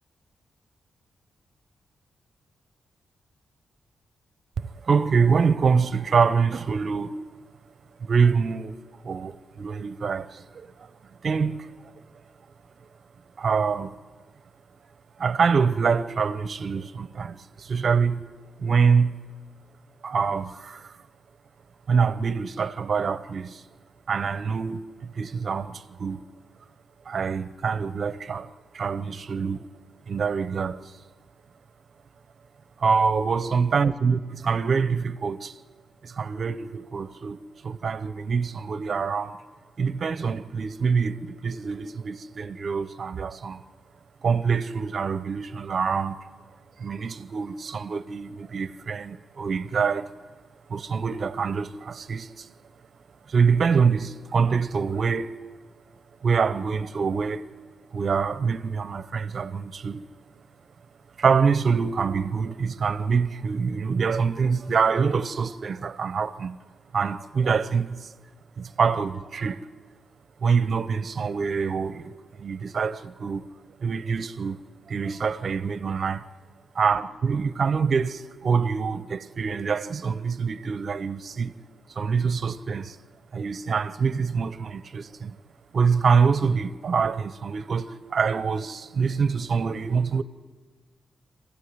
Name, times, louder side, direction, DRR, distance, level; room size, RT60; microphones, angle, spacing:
voice 1, 4.6-7.2 8.0-8.8 9.0-11.9 13.4-14.0 15.2-18.2 18.6-19.2 20.0-21.0 21.9-23.6 24.1-26.2 27.1-29.7 30.1-30.9 32.8-35.6 36.0-39.4 39.8-43.6 44.2-46.3 46.8-50.1 50.7-52.5 53.3-55.4 56.2-57.5 57.9-60.0 61.2-66.6 66.9-68.1 68.6-69.7 70.4-73.5 73.8-74.6 74.9-76.3 76.7-81.5 81.9-83.0 83.3-85.4 85.7-90.2, right 5 dB, 40° right, 0.7 m, -25 dB
26.0 x 15.5 x 9.6 m
wide cardioid pair, 175°, 0 cm